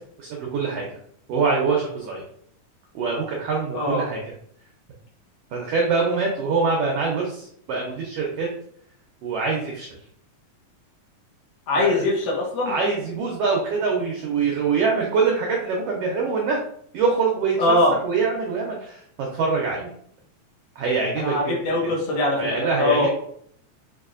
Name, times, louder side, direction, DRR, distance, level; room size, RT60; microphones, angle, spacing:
voice 1, 0.2-1.0 1.3-2.2 2.9-4.2 5.5-8.5 9.2-9.9 11.8-12.0 12.6-16.6 16.9-17.8 18.0-19.9 20.8-21.9 22.3-23.1, right 4 dB, 80° right, -1 dB, 1.4 m, -24 dB
voice 2, 3.7-4.1 11.7-12.8 17.6-18.0 21.2-23.1, left 2 dB, 70° left, -3 dB, 1.7 m, -22 dB
5.5 x 2.4 x 2.4 m, 0.65 s
omnidirectional pair, 3.4 m